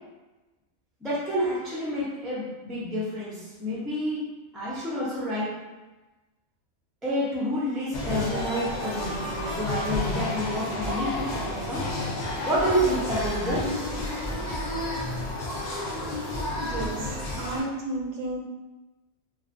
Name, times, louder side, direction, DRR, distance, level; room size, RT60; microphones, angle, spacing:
voice 1, 1.0-4.2 4.5-5.5 7.0-11.9 12.4-13.8 14.3-14.4, equal, ahead, -8 dB, 0.3 m, -29 dB
sound 1, 7.9-17.6, left 1 dB, 70° left, 0.4 m, -31 dB
voice 2, 16.5-18.4, right 2 dB, 75° right, -1 dB, 0.9 m, -33 dB
2.4 x 2.3 x 2.5 m, 1.1 s
omnidirectional pair, 1.4 m